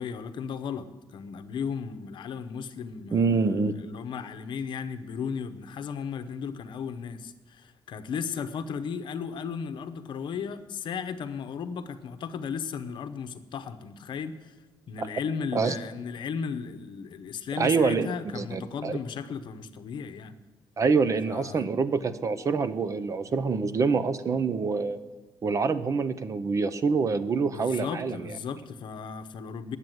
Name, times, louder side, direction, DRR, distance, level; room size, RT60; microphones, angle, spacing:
voice 1, 0.0-14.6 14.9-20.4 21.3-21.7 27.4-29.8, left 6 dB, 70° left, 0.8 m, -35 dB
voice 2, 3.1-3.8 15.0-15.1 15.5-15.7 17.6-18.1 18.3-19.0 20.8-25.0 25.4-28.3, right 4 dB, 40° right, 0.6 m, -26 dB
10.5 x 8.2 x 7.8 m
wide cardioid pair, 150°, 8 cm